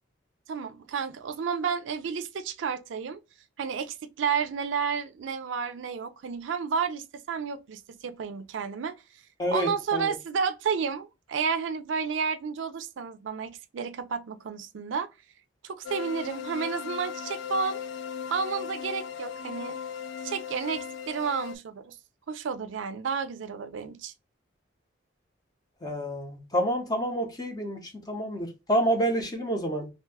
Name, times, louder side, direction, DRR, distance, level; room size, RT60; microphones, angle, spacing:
voice 1, 0.5-3.2 3.6-9.0 9.5-15.1 15.6-17.8 18.3-19.8 20.2-22.0 22.3-24.1, right 6 dB, 85° right, 0.4 m, -31 dB
voice 2, 9.4-10.1 25.8-29.9, right 1 dB, 20° left, 0.7 m, -28 dB
sound 1, 15.8-21.6, left 8 dB, 80° left, 0.3 m, -37 dB
2.7 x 2.1 x 3.3 m
head